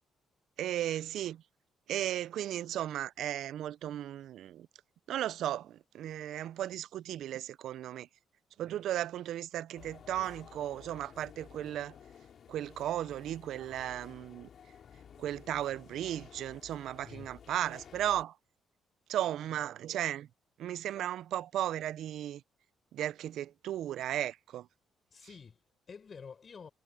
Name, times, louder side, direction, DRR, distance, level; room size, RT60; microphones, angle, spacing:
voice 1, 0.6-1.4 1.9-4.7 5.1-8.1 8.6-11.9 12.5-14.5 15.2-18.4 19.1-20.3 20.6-22.4 22.9-24.7, right 12 dB, 75° right, 0.4 m, -35 dB
sound 1, 9.7-18.2, left 8 dB, 60° left, 2.6 m, -54 dB
voice 2, 17.0-17.3 25.1-26.7, left 6 dB, 45° left, 6.4 m, -49 dB
cardioid pair, 90°, 0 cm